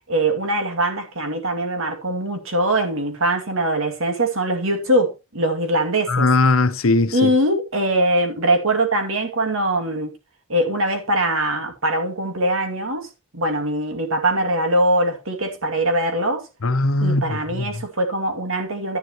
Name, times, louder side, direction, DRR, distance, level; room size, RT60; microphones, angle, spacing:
voice 1, 0.1-6.3 7.1-10.1 10.5-13.1 13.3-16.4 17.0-19.0, right 1 dB, 70° right, 2.4 m, -22 dB
voice 2, 6.1-7.3 16.6-17.8, left 2 dB, 70° left, 1.0 m, -19 dB
11.0 x 10.5 x 3.0 m
head